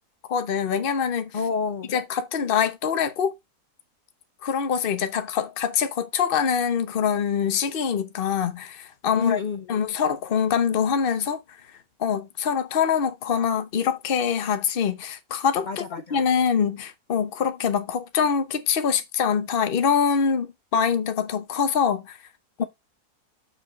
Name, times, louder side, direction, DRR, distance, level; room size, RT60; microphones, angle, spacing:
voice 1, 0.3-1.3 1.9-3.3 4.4-9.4 9.7-11.4 12.0-15.8 16.1-22.2, left 7 dB, 40° left, 1.0 m, -24 dB
voice 2, 1.3-1.9 9.2-9.7 15.7-16.2 22.6-22.7, left 5 dB, 75° left, 0.4 m, -28 dB
6.7 x 4.9 x 5.2 m
omnidirectional pair, 1.7 m